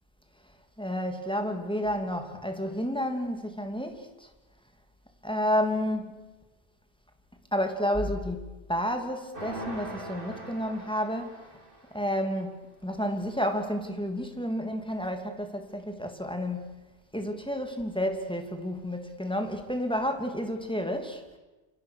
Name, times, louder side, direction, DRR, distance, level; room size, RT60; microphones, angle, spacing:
voice 1, 0.8-4.3 5.2-6.2 7.5-8.4 8.7-11.4 11.9-12.5 12.8-16.8 17.1-21.4, equal, 5° left, 5 dB, 2.8 m, -30 dB
sound 1, 9.3-12.1, right 1 dB, 50° right, 4.7 m, -41 dB
28.5 x 26.0 x 6.6 m, 1.1 s
omnidirectional pair, 1.1 m